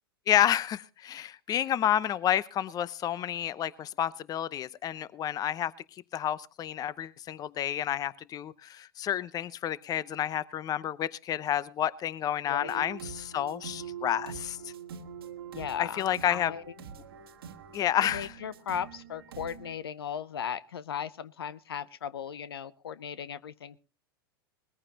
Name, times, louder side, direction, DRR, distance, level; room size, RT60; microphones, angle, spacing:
voice 1, 0.3-5.7 6.1-14.7 15.8-16.5 17.7-18.3, left 11 dB, 30° left, 19 dB, 0.7 m, -30 dB
voice 2, 12.5-12.8 15.5-16.6 17.8-23.8, left 8 dB, 90° left, 18 dB, 0.7 m, -37 dB
sound 1, 12.6-19.7, right 7 dB, 85° right, 1.4 m, -44 dB
20.5 x 14.5 x 2.9 m, 0.32 s
hypercardioid pair, 105°, 12 cm